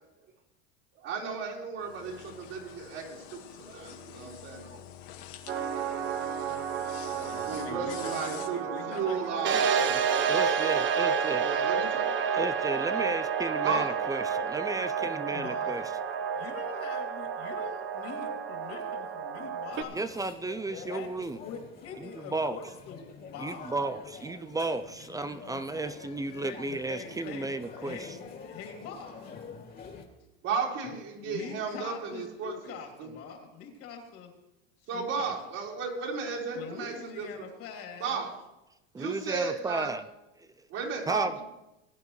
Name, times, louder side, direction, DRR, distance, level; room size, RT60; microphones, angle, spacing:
voice 1, 1.0-4.8 6.4-6.6 7.1-10.3 11.4-12.1 13.6-13.9 30.4-32.5 33.0-33.1 34.9-37.5 38.0-38.3 38.9-39.9 40.7-41.4, right 5 dB, 55° right, -4 dB, 4.4 m, -34 dB
sound 1, 1.8-8.5, left 10 dB, 70° left, 1.8 m, -47 dB
sound 2, 5.5-19.8, right 7 dB, 40° right, 0.9 m, -30 dB
voice 2, 7.3-10.1 15.3-15.9 16.3-20.0 20.7-21.1 21.4-23.7 26.4-27.5 27.8-29.3 30.8-30.9 31.2-34.3 34.9-35.3 36.5-38.3, left 6 dB, 50° left, 2 dB, 2.9 m, -43 dB
voice 3, 10.3-11.4 12.3-15.8 19.9-21.4 22.0-22.6 23.4-28.2 38.9-40.0 40.4-40.5 41.1-41.4, right 2 dB, 10° right, 11 dB, 0.5 m, -34 dB
sound 3, 19.7-30.1, left 5 dB, 30° left, 2.4 m, -47 dB
20.0 x 9.4 x 3.2 m, 0.93 s
supercardioid pair, 115°, 30 cm